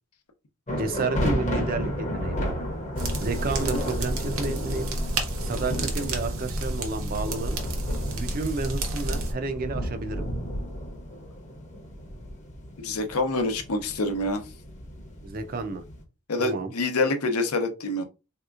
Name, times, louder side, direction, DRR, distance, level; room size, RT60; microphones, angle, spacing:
sound 1, 0.7-16.0, equal, 30° left, 0.7 m, -33 dB
voice 1, 0.8-2.4 3.2-4.9 5.4-7.6 8.1-10.3 15.2-15.8 16.4-16.7, right 3 dB, 40° right, 0.4 m, -31 dB
sound 2, 3.0-9.3, right 1 dB, 65° right, 0.7 m, -30 dB
voice 2, 12.8-14.4 16.3-18.0, left 2 dB, 85° left, 0.7 m, -26 dB
3.4 x 2.8 x 2.4 m
head